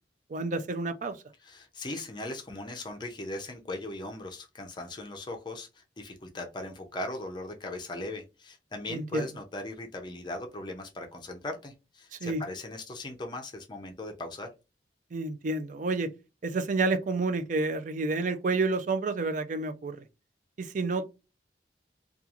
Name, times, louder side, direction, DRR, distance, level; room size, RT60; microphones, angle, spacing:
voice 1, 0.3-1.2 8.9-9.2 12.1-12.4 15.1-16.1 16.4-20.0 20.6-21.1, right 3 dB, 45° right, 0.4 m, -29 dB
voice 2, 1.4-14.5, left 2 dB, 25° left, 0.5 m, -38 dB
3.0 x 2.3 x 2.4 m
head